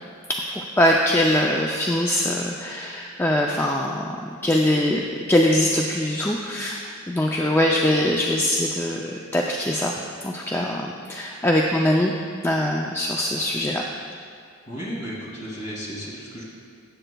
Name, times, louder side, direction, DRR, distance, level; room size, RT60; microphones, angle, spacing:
voice 1, 0.3-9.9 10.2-12.1 12.4-13.8, left 1 dB, 10° left, 0 dB, 0.4 m, -22 dB
voice 2, 14.7-16.4, equal, 35° left, -5 dB, 2.4 m, -34 dB
16.5 x 7.8 x 2.3 m, 2.3 s
head